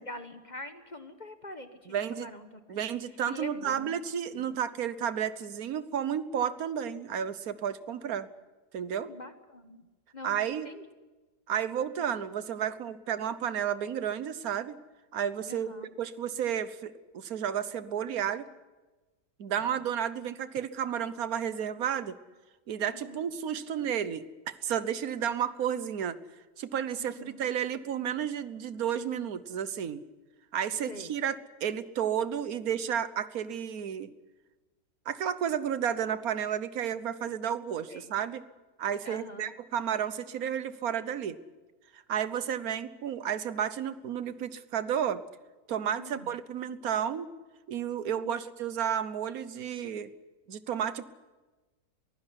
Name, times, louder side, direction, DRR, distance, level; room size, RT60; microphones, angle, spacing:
voice 1, 0.0-2.8 3.3-3.9 4.4-4.6 9.1-9.9 10.1-10.9 11.9-12.1 15.5-15.9 19.6-19.8 22.9-23.3 27.0-27.4 30.9-31.1 37.9-38.1 39.0-39.5 45.9-46.3 48.2-48.3, left 1 dB, 30° left, 8 dB, 1.2 m, -45 dB
voice 2, 1.9-2.3 2.7-8.3 8.7-9.1 10.2-10.7 11.5-14.8 15.1-15.7 16.0-18.5 19.4-22.1 22.7-26.2 26.6-30.0 30.5-34.1 35.1-38.4 38.8-41.4 41.9-45.2 45.7-47.3 47.7-50.1 50.5-51.1, right 9 dB, 65° right, 14 dB, 1.4 m, -32 dB
22.5 x 15.5 x 9.8 m, 1.2 s
omnidirectional pair, 1.8 m